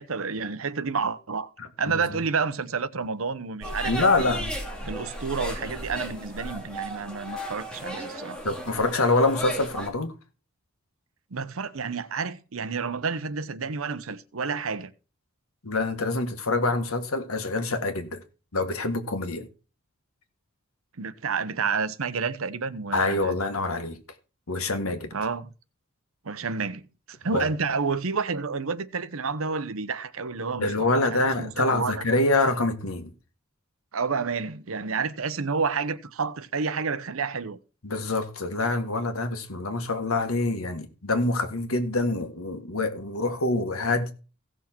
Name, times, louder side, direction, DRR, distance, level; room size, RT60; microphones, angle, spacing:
voice 1, 0.0-1.5 1.8-4.4 4.8-8.4 11.3-14.9 21.0-23.4 25.1-25.5 26.2-32.0 33.9-37.6, right 5 dB, 75° right, 0.8 m, -30 dB
voice 2, 1.6-2.2 3.9-4.5 8.4-10.1 15.6-18.2 18.5-19.5 22.9-24.0 24.5-25.1 27.3-27.5 30.6-33.1 37.8-44.1, left 2 dB, 85° left, 1.7 m, -26 dB
sound 1, 3.6-9.9, equal, 5° left, 2.7 m, -35 dB
16.5 x 6.3 x 4.4 m
head